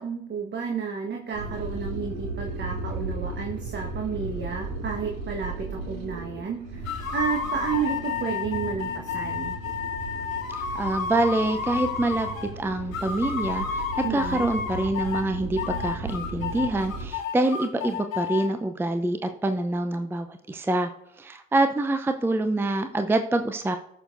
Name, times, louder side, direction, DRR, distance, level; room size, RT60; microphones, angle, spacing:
voice 1, 0.0-9.6 14.0-14.5, right 5 dB, 25° right, 1 dB, 1.3 m, -31 dB
sound 1, 1.3-17.1, right 3 dB, 55° right, 2.3 m, -36 dB
sound 2, 6.8-12.5 12.9-15.3 15.6-18.5, left 6 dB, 75° left, 1.1 m, -31 dB
voice 2, 10.5-12.3 12.6-20.9 21.2-23.8, right 2 dB, 5° right, 8 dB, 0.7 m, -26 dB
19.0 x 6.6 x 2.6 m, 0.76 s
figure-of-eight pair, 60°, 40 cm